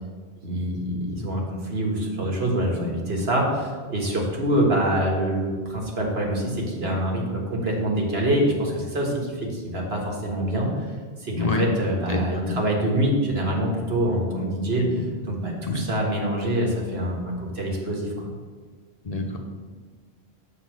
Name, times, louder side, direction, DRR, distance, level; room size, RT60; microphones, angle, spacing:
voice 1, 0.4-10.7 11.2-14.9 15.2-18.3, right 1 dB, 75° right, -1 dB, 1.7 m, -25 dB
voice 2, 19.0-19.4, left 4 dB, 40° left, 1 dB, 0.9 m, -26 dB
7.3 x 4.1 x 6.2 m, 1.5 s
omnidirectional pair, 1.1 m